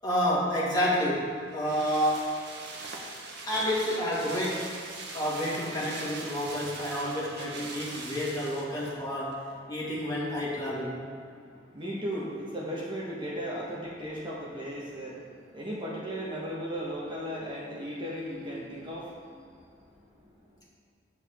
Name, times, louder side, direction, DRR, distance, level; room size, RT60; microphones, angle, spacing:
voice 1, 0.0-2.4 3.5-4.8 5.1-11.0, equal, 20° left, -7 dB, 1.9 m, -29 dB
sound 1, 1.2-9.0 9.3-9.4, right 3 dB, 65° right, 0.9 m, -41 dB
voice 2, 11.2-20.7, equal, 25° right, -5 dB, 1.2 m, -37 dB
8.1 x 7.1 x 3.5 m, 2.2 s
head